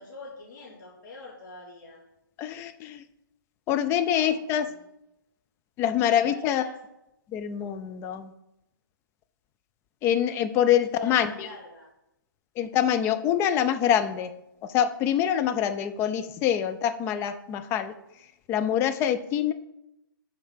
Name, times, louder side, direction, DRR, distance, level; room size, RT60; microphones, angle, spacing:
voice 1, 0.0-2.0 4.1-4.9 6.1-6.8 10.9-11.9, left 2 dB, 55° left, -4 dB, 2.3 m, -45 dB
voice 2, 2.4-3.0 3.7-4.7 5.8-6.6 7.3-8.3 10.0-11.5 12.6-14.3 14.7-17.9 18.5-19.5, left 10 dB, 20° left, 9 dB, 0.5 m, -25 dB
5.7 x 4.6 x 6.4 m, 0.87 s
hypercardioid pair, 135°, 12 cm